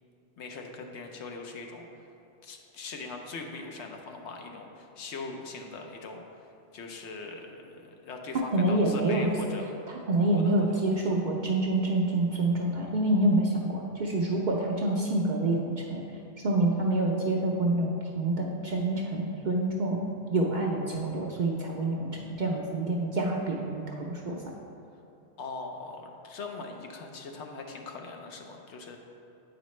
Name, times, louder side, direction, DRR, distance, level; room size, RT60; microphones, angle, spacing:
voice 1, 0.4-2.0 2.4-6.2 6.7-9.7 10.3-10.8 11.1-11.2 25.4-29.0, left 3 dB, 70° left, 3 dB, 0.9 m, -41 dB
voice 2, 8.5-9.3 10.1-16.0 16.4-20.0 20.3-24.4, right 2 dB, 55° right, -1 dB, 0.6 m, -27 dB
8.4 x 5.0 x 3.1 m, 2.8 s
omnidirectional pair, 1.2 m